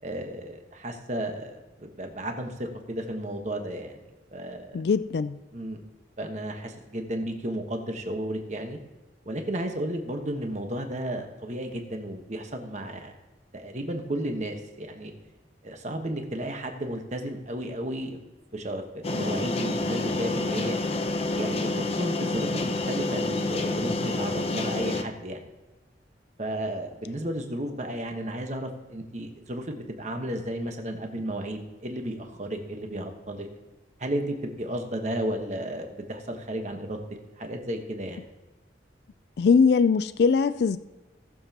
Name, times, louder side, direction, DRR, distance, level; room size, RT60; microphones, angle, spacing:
voice 1, 0.0-4.0 4.3-4.8 5.5-5.8 6.2-8.8 9.2-13.1 13.5-15.1 15.6-18.2 18.5-20.8 21.3-25.5 26.4-33.5 34.0-37.0 37.4-38.2, right 1 dB, 40° right, 1.2 m, -33 dB
voice 2, 4.7-5.4 39.4-40.8, left 5 dB, 60° left, 0.3 m, -21 dB
sound 1, 19.0-25.0, left 2 dB, 35° left, 0.7 m, -28 dB
18.5 x 7.2 x 2.9 m
head